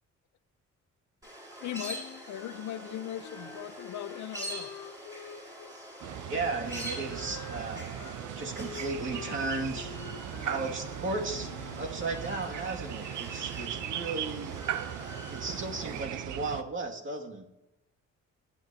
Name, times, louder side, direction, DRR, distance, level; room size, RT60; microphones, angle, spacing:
sound 1, 1.2-16.0, right 1 dB, 10° right, 5.2 m, -45 dB
voice 1, 1.6-4.7, left 11 dB, 70° left, 0.8 m, -39 dB
Wind instrument woodwind instrument, 1.6-5.8 6.5-11.9, left 5 dB, 50° left, 1.4 m, -47 dB
sound 2, 6.0-16.6, right 10 dB, 75° right, 0.7 m, -38 dB
voice 2, 6.3-10.0 10.4-17.5, right 3 dB, 40° right, 2.4 m, -36 dB
20.0 x 9.5 x 2.9 m
cardioid pair, 90°, 30 cm